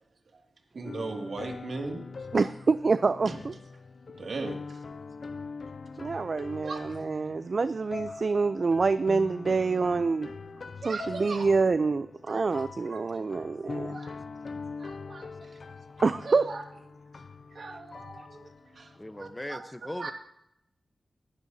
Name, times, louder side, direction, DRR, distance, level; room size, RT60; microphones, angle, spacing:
voice 1, 0.7-2.0 2.3-2.4 3.3-3.4 4.2-5.0 6.6-7.1 10.8-11.5 12.3-12.5 12.9-13.0 13.9-14.1 14.8-15.6 16.2-16.6 17.5-20.1, right 3 dB, 70° right, 2.2 m, -39 dB
sound 1, 0.8-19.4, left 4 dB, 65° left, 0.5 m, -43 dB
voice 2, 2.3-3.5 6.0-10.3 10.8-14.0 16.0-16.4, right 4 dB, 55° right, 0.4 m, -26 dB
voice 3, 18.9-20.1, left 1 dB, 15° left, 0.9 m, -39 dB
20.0 x 11.0 x 2.7 m
wide cardioid pair, 70°, 0 cm